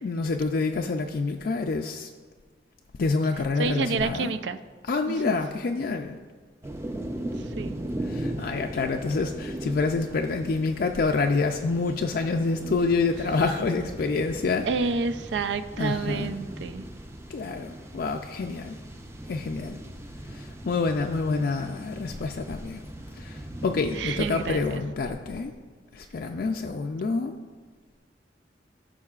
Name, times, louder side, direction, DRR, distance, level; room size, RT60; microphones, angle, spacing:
voice 1, 0.0-2.1 3.0-4.3 4.9-6.2 8.1-14.7 15.8-16.3 17.3-18.8 19.3-19.8 20.3-22.8 23.1-25.5 25.9-27.4, left 4 dB, 55° left, 3 dB, 0.4 m, -27 dB
voice 2, 3.6-4.6 5.1-5.4 7.4-7.8 14.6-16.9 23.9-24.8, right 4 dB, 75° right, 11 dB, 0.4 m, -29 dB
sound 1, 6.6-24.8, right 1 dB, 15° right, 0.5 m, -38 dB
15.5 x 5.7 x 2.4 m, 1.5 s
head